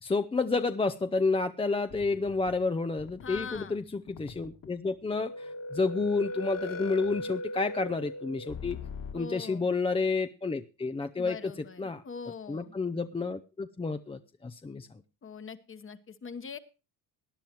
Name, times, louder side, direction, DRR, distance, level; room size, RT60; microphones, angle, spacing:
voice 1, 0.0-8.8 9.1-11.5 11.8-12.0 12.5-14.9, left 4 dB, 15° left, 8 dB, 0.5 m, -30 dB
sound 1, 1.9-2.7 3.0-3.8 4.1-4.7 5.1-9.1, left 2 dB, 55° left, 2.2 m, -39 dB
voice 2, 3.2-3.8 9.1-9.7 11.2-12.7 15.2-16.6, left 6 dB, 30° left, 11 dB, 1.2 m, -42 dB
19.0 x 10.5 x 3.0 m, 0.32 s
cardioid pair, 100°, 41 cm